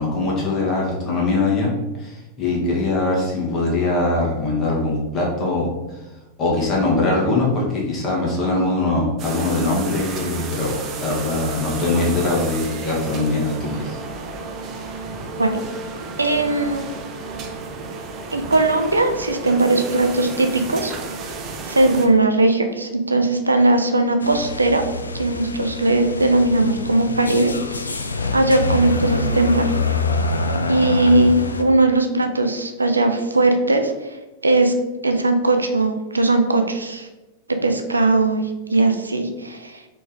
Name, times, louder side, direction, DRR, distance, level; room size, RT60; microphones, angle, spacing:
voice 1, 0.0-6.0 6.4-14.0, left 2 dB, 30° left, -4 dB, 1.5 m, -22 dB
sound 1, 9.2-22.1, right 3 dB, 35° right, 0.6 m, -32 dB
voice 2, 16.2-16.8 18.3-20.9 21.7-24.8 25.1-27.5 27.8-29.7 30.7-33.9 34.4-34.7 35.0-37.1 37.6-39.8, right 2 dB, 80° right, 6 dB, 0.4 m, -19 dB
sound 2, 24.2-31.6, left 3 dB, 75° left, 0.3 m, -25 dB
4.0 x 3.2 x 3.8 m, 1.1 s
figure-of-eight pair, 90°, 0 cm